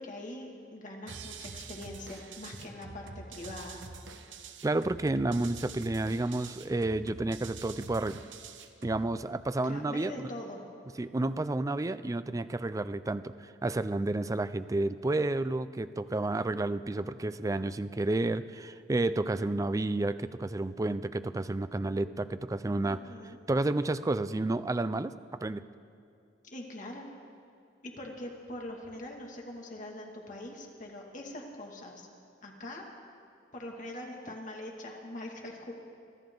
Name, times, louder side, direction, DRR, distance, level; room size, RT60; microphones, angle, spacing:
voice 1, 0.0-3.8 9.6-10.6 22.8-23.4 26.4-27.1 27.8-32.1 32.4-32.8 33.5-35.7, left 1 dB, 45° left, 0 dB, 2.3 m, -43 dB
sound 1, 1.1-9.1, right 4 dB, 85° right, 1.0 m, -46 dB
voice 2, 4.6-8.2 8.8-10.3 11.0-23.0 23.5-25.1 25.4-25.6, right 2 dB, 20° right, 13 dB, 0.4 m, -31 dB
25.0 x 13.5 x 3.9 m, 2.5 s
head